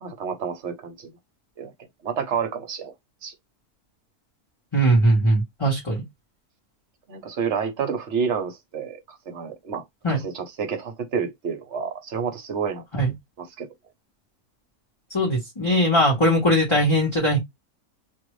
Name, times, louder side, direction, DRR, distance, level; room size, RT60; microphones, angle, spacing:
voice 1, 0.0-1.1 1.6-1.7 2.0-2.9 3.2-3.3 7.1-12.8 13.4-13.7, right 6 dB, 55° right, 0.9 m, -29 dB
voice 2, 4.7-6.0 10.0-10.2 12.9-13.1 15.1-17.4, equal, 20° left, 0.9 m, -20 dB
2.6 x 2.5 x 3.1 m
omnidirectional pair, 1.6 m